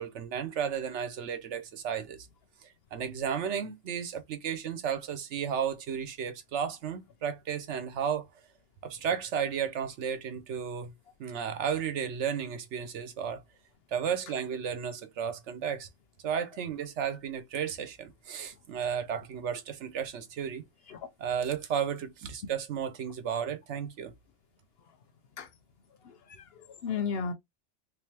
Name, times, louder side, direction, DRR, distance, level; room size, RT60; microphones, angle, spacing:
voice 1, 0.0-2.3 2.9-8.3 8.8-10.9 11.2-13.4 13.9-15.9 16.2-20.6 21.2-24.1, right 8 dB, 75° right, 1.1 m, -33 dB
voice 2, 26.0-27.3, left 6 dB, 65° left, 0.7 m, -35 dB
3.4 x 2.8 x 3.2 m
omnidirectional pair, 1.2 m